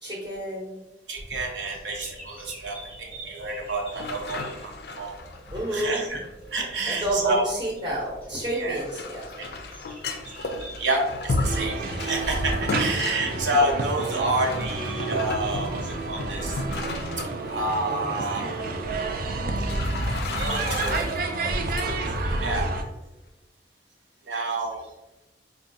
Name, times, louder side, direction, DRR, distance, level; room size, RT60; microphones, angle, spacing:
voice 1, 0.0-0.8 5.5-6.0 6.9-9.3 13.0-13.2, equal, 25° right, -5 dB, 0.7 m, -30 dB
voice 2, 1.1-5.2 5.7-6.2 6.5-7.4 8.5-8.8 9.4-9.5 10.8-16.6 17.5-18.5 20.4-21.0 21.7-22.6 24.3-24.8, right 2 dB, 85° right, -1 dB, 0.8 m, -28 dB
sound 1, 1.5-10.9, right 1 dB, 10° left, 0.8 m, -46 dB
sound 2, 3.9-6.5 8.6-17.7 18.0-18.1 19.0-19.2 19.7-21.9 22.2-22.6, left 3 dB, 60° left, 0.3 m, -34 dB
sound 3, 11.4-22.8, right 2 dB, 50° right, 0.3 m, -29 dB
4.4 x 2.2 x 2.6 m, 1.0 s
head